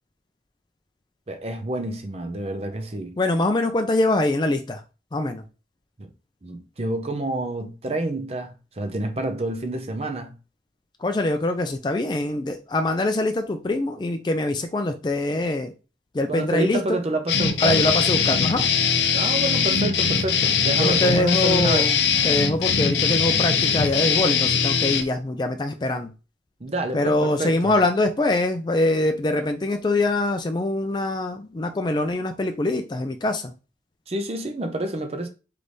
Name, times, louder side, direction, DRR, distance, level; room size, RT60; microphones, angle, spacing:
voice 1, 1.3-3.2 6.0-6.1 6.4-10.4 16.3-17.9 19.1-22.0 26.6-27.8 34.1-35.3, right 2 dB, 35° right, 0.6 m, -28 dB
voice 2, 3.2-4.8 5.1-5.4 11.0-15.7 16.1-17.0 17.6-18.7 20.8-22.0 22.2-26.1 26.9-33.5, left 2 dB, 25° left, 0.4 m, -23 dB
sound 1, 17.3-25.0, left 6 dB, 75° left, 0.6 m, -21 dB
3.3 x 3.3 x 4.0 m
head